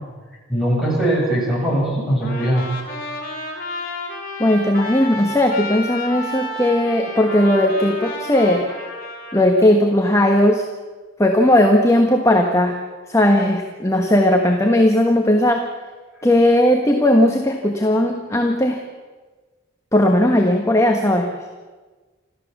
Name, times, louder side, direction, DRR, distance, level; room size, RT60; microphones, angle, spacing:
voice 1, 0.5-2.7, right 1 dB, ahead, -4 dB, 7.9 m, -20 dB
Trumpet, 2.2-9.7, left 2 dB, 45° left, 4.6 m, -31 dB
voice 2, 4.4-8.7 9.3-10.6 11.2-12.8 13.1-15.7 16.2-18.8 19.9-21.3, left 1 dB, 15° left, 3 dB, 1.4 m, -17 dB
26.5 x 14.5 x 7.3 m, 1.4 s
head